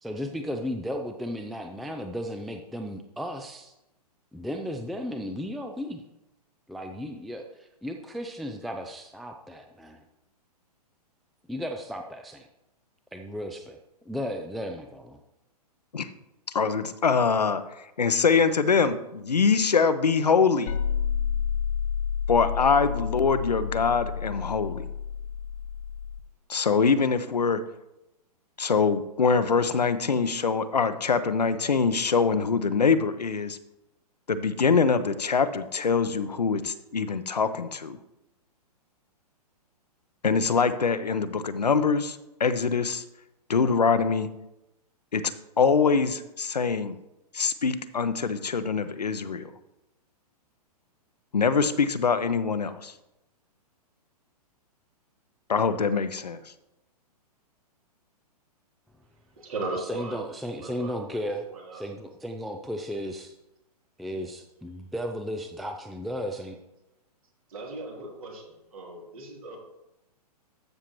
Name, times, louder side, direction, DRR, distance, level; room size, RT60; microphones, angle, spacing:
voice 1, 0.0-3.7 4.3-6.0 6.7-10.0 11.5-12.5 13.1-13.8 14.1-15.2 59.8-61.5 61.7-63.4 64.0-66.6, equal, ahead, 4 dB, 0.3 m, -35 dB
voice 2, 16.5-20.7 22.3-24.9 26.5-27.6 28.6-33.6 34.3-38.0 40.2-43.0 43.5-44.3 45.1-45.2 45.6-47.0 47.3-49.5 51.3-52.9 55.5-56.4, left 5 dB, 80° left, 12 dB, 0.7 m, -24 dB
sound 1, 20.7-26.2, left 7 dB, 50° left, 1.1 m, -30 dB
voice 3, 59.3-61.2 61.5-61.8 67.5-69.6, right 2 dB, 60° right, -1 dB, 3.1 m, -37 dB
13.0 x 6.9 x 3.1 m, 0.91 s
figure-of-eight pair, 115°, 20 cm